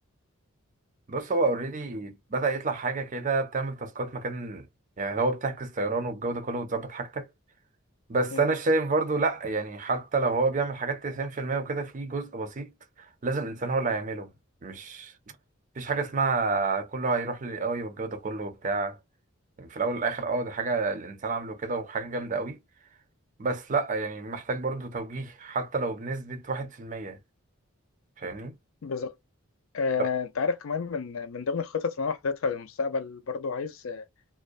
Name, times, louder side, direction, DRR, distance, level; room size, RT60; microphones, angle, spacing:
voice 1, 1.1-4.7 5.0-7.3 8.1-12.7 13.2-14.3 14.6-15.1 15.8-19.0 19.6-22.6 23.4-27.2 28.2-28.6 30.0-30.1, right 3 dB, 35° right, 0.5 m, -29 dB
voice 2, 28.8-29.1 29.7-34.0, left 5 dB, 70° left, 0.5 m, -30 dB
2.4 x 2.1 x 2.4 m
head